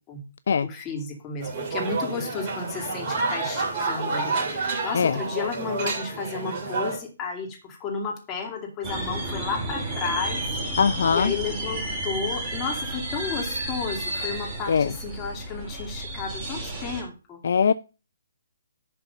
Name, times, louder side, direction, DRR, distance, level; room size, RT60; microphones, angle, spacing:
voice 1, 0.6-10.4 11.1-17.4, left 5 dB, 20° left, 0 dB, 2.6 m, -33 dB
sound 1, 1.4-7.0, right 3 dB, 35° right, 2.8 m, -29 dB
sound 2, 8.8-17.0, right 1 dB, 15° right, 3.2 m, -32 dB
voice 2, 10.8-11.3 14.7-14.9 17.4-17.7, left 6 dB, 55° left, 14 dB, 0.3 m, -21 dB
11.0 x 4.1 x 5.4 m, 0.33 s
figure-of-eight pair, 135°, 0 cm